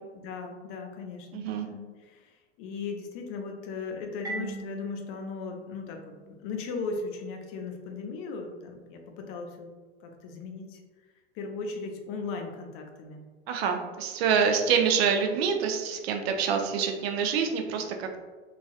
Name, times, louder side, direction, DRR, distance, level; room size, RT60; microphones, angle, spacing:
voice 1, 0.1-6.0 6.4-9.7 10.0-10.8 11.3-13.2, left 4 dB, 40° left, 3 dB, 0.6 m, -37 dB
voice 2, 1.3-1.7 13.5-18.2, right 6 dB, 60° right, 4 dB, 0.6 m, -26 dB
Marimba xylophone, 4.2-6.9, right 2 dB, 10° right, 0.7 m, -41 dB
3.1 x 2.5 x 2.4 m, 1.3 s
hypercardioid pair, 90°, 35 cm